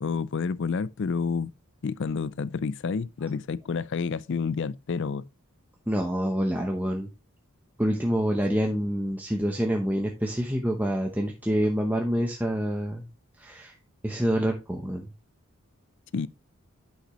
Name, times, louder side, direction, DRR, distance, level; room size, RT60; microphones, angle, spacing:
voice 1, 0.0-1.5 1.8-5.2 16.1-16.3, left 5 dB, 55° left, 0.4 m, -29 dB
voice 2, 5.9-7.1 7.8-13.1 13.4-13.7 14.0-15.1, equal, 10° right, 0.8 m, -27 dB
10.0 x 5.6 x 3.0 m
head